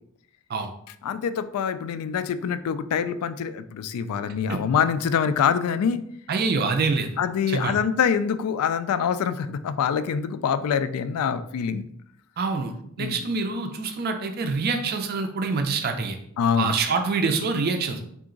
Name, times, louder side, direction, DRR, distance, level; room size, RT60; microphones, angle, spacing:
voice 1, 1.0-6.0 7.2-11.9 13.0-13.2 16.4-16.7, left 7 dB, 80° left, 12 dB, 0.3 m, -25 dB
voice 2, 6.3-7.1 7.5-7.8 12.4-16.2 16.6-18.0, right 4 dB, 45° right, 5 dB, 0.4 m, -26 dB
3.8 x 2.4 x 3.7 m, 0.70 s
head